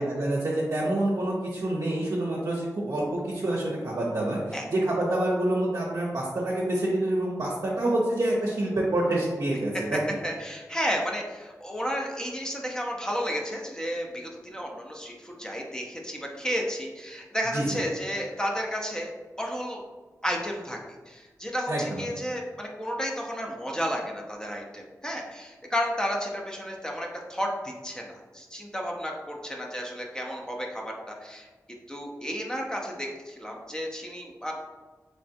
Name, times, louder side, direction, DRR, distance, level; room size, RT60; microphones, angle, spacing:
voice 1, 0.0-10.0 17.5-17.6 21.7-22.1, right 1 dB, 60° right, -5 dB, 0.7 m, -27 dB
voice 2, 10.2-19.1 19.4-19.8 20.2-20.8 21.1-31.5 31.9-34.5, equal, 10° left, 0 dB, 0.7 m, -32 dB
3.4 x 3.2 x 2.8 m, 1.3 s
wide cardioid pair, 60°, 6 cm